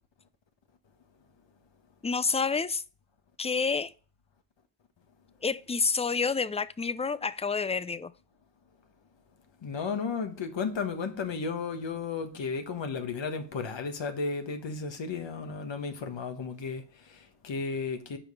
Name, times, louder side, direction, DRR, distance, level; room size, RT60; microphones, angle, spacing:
voice 1, 2.0-2.8 3.4-3.9 5.4-8.1, left 5 dB, 15° left, 0.4 m, -28 dB
voice 2, 9.6-18.2, left 5 dB, 60° left, 1.4 m, -34 dB
6.0 x 5.0 x 5.5 m
cardioid pair, 45°, 49 cm